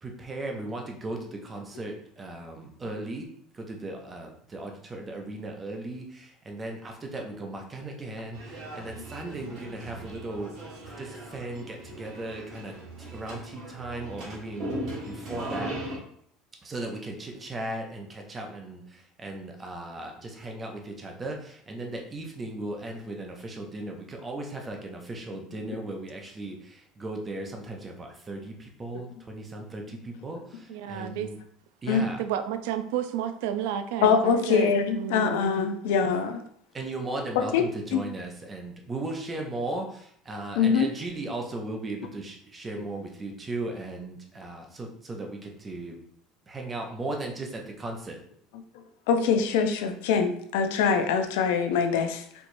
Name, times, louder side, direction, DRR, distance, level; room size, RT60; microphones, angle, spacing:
voice 1, 0.0-3.3 3.5-10.5 11.0-14.7 15.0-15.7 16.6-31.4 31.8-32.2 36.7-46.0 46.5-48.2, right 2 dB, 15° right, 2 dB, 0.5 m, -37 dB
sound 1, 8.3-16.0, right 1 dB, 45° right, 1.3 m, -38 dB
voice 2, 30.7-31.3 32.2-35.5, right 10 dB, 80° right, 10 dB, 0.3 m, -31 dB
voice 3, 34.0-36.4 37.4-37.6 37.9-38.0 40.6-40.9 49.1-52.2, left 6 dB, 85° left, 7 dB, 0.5 m, -23 dB
4.3 x 2.9 x 2.6 m, 0.66 s
cardioid pair, 175°, 0 cm